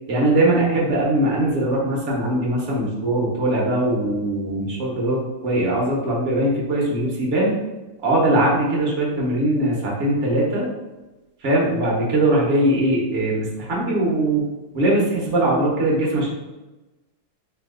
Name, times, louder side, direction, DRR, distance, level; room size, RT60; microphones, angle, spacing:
voice 1, 0.1-7.6 8.0-10.7 11.4-14.4 14.7-16.3, right 1 dB, 45° right, -3 dB, 1.1 m, -21 dB
3.3 x 3.2 x 3.7 m, 1.1 s
omnidirectional pair, 2.2 m